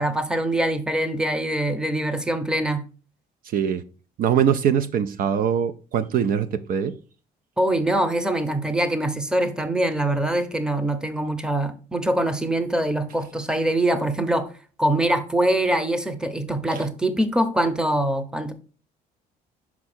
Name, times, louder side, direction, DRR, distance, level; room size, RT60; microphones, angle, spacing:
voice 1, 0.0-2.8 7.6-14.5 14.8-18.5, right 1 dB, 5° right, 0.8 m, -23 dB
voice 2, 4.2-6.9 16.7-16.8, right 8 dB, 60° right, 0.5 m, -22 dB
6.0 x 4.7 x 4.3 m
cardioid pair, 110°, 17 cm